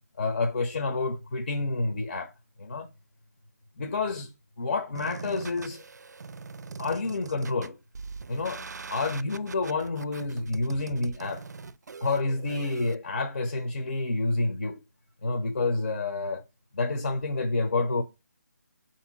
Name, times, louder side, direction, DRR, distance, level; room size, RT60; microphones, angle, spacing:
voice 1, 0.2-2.3 2.6-2.9 3.8-4.3 4.6-5.8 6.8-7.8 8.3-8.6 8.9-11.4 12.0-14.8 15.2-16.4 16.7-18.0, left 3 dB, 50° left, 0.8 m, -29 dB
sound 1, 5.0-13.0, right 4 dB, 75° right, 0.4 m, -42 dB
3.9 x 2.8 x 4.0 m
figure-of-eight pair, 165°, 9 cm